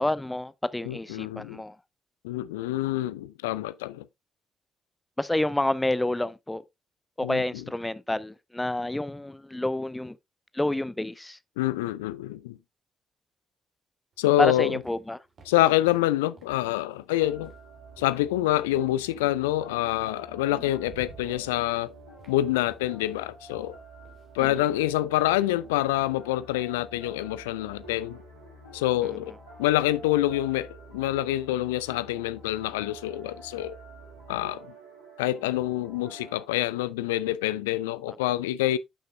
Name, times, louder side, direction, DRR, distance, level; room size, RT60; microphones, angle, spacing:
voice 1, 0.0-1.8 5.2-6.6 7.2-10.2 10.5-11.4 14.4-15.2 20.5-20.7 24.4-24.7 29.0-29.2 38.1-38.2, left 1 dB, 10° left, 0.7 m, -29 dB
voice 2, 0.9-1.6 2.2-4.1 7.2-7.4 11.6-12.6 14.2-14.8 15.5-17.5 18.0-21.9 22.3-23.8 24.3-28.2 28.7-29.3 29.6-33.8 34.3-34.7 35.2-38.8, left 15 dB, 75° left, 0.4 m, -26 dB
sound 1, 14.1-18.7 20.0-20.1 20.5-26.1, right 5 dB, 50° right, 2.4 m, -55 dB
sound 2, 17.2-36.4, right 2 dB, 80° right, 4.7 m, -48 dB
11.5 x 6.5 x 2.2 m
figure-of-eight pair, 40°, 0 cm